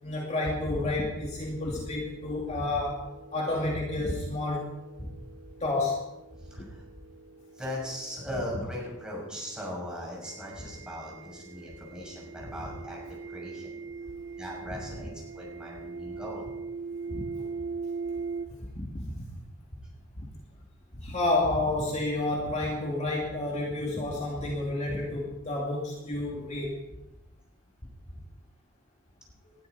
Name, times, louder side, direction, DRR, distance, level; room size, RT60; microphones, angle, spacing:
voice 1, 0.0-3.0 3.3-4.7 5.0-5.1 5.6-6.0 6.6-6.7 17.1-17.5 18.7-19.2 20.2-20.3 20.9-26.8, left 2 dB, 35° left, -2 dB, 2.5 m, -30 dB
sound 1, 1.5-18.5, right 4 dB, 60° right, 1.0 m, -42 dB
voice 2, 6.4-6.8 7.5-13.8 14.4-16.5, left 1 dB, 5° right, -3 dB, 6.7 m, -39 dB
20.0 x 13.0 x 4.2 m, 0.95 s
head